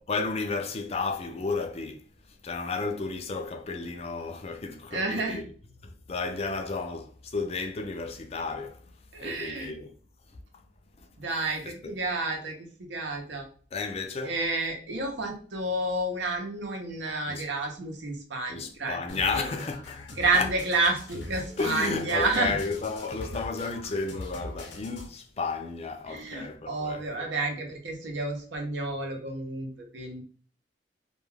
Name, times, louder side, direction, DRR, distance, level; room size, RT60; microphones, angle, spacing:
voice 1, 0.0-5.4 5.8-8.9 9.2-9.9 11.0-11.1 11.6-11.9 13.7-14.3 17.3-17.4 18.5-20.5 21.6-27.3, left 4 dB, 35° left, 0.4 m, -33 dB
voice 2, 4.9-5.4 9.1-9.7 11.2-13.5 14.2-19.0 19.3-19.5 20.2-22.6 26.1-30.2, right 2 dB, 85° right, 0.7 m, -30 dB
sound 1, 19.1-25.1, left 1 dB, 80° left, 0.7 m, -41 dB
2.3 x 2.2 x 3.2 m
head